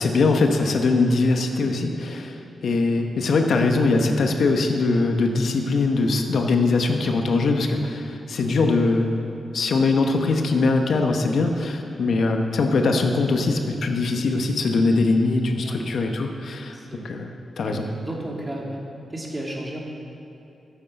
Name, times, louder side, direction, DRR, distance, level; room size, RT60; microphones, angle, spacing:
voice 1, 0.0-9.1 9.5-16.8 17.0-17.3 17.6-17.8, left 3 dB, 70° left, 4 dB, 1.1 m, -21 dB
voice 2, 16.7-17.2 17.7-18.8 19.1-19.8, right 1 dB, 20° right, -2 dB, 2.6 m, -34 dB
12.0 x 8.1 x 7.6 m, 2.8 s
cardioid pair, 70°, 0 cm